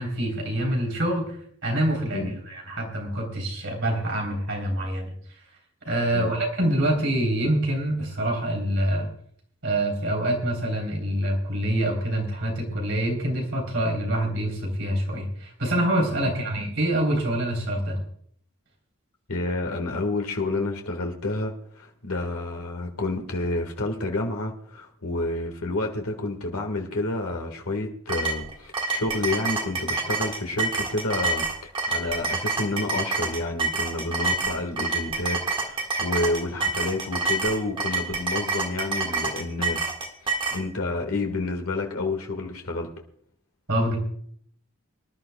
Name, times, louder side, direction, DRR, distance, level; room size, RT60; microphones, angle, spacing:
voice 1, 0.0-5.1 5.9-9.1 9.6-18.0 43.7-44.0, right 1 dB, 55° right, 1 dB, 3.6 m, -26 dB
voice 2, 19.3-39.9 40.5-42.9, left 2 dB, 85° left, 3 dB, 1.7 m, -29 dB
sound 1, 28.1-40.6, right 3 dB, 20° right, 1.7 m, -27 dB
24.5 x 11.5 x 2.3 m, 0.63 s
head